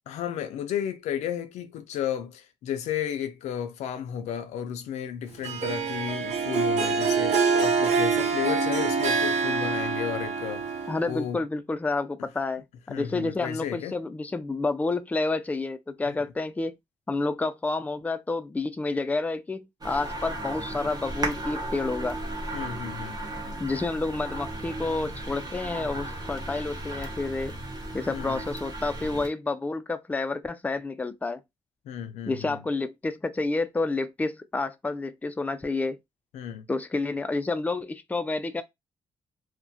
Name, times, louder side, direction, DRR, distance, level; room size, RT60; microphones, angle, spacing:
voice 1, 0.1-11.4 12.9-14.0 16.1-16.2 22.5-23.2 28.1-28.5 31.9-32.6 36.3-36.7, left 9 dB, 85° left, 0.4 m, -33 dB
Harp, 5.4-11.2, right 5 dB, 70° right, 0.6 m, -25 dB
voice 2, 10.9-16.8 17.1-22.2 23.6-27.5 27.9-31.4 32.3-36.0 36.7-38.6, left 3 dB, 15° left, 0.3 m, -29 dB
sound 1, 19.8-29.3, right 1 dB, 35° right, 0.9 m, -35 dB
2.3 x 2.1 x 2.6 m
cardioid pair, 70°, 12 cm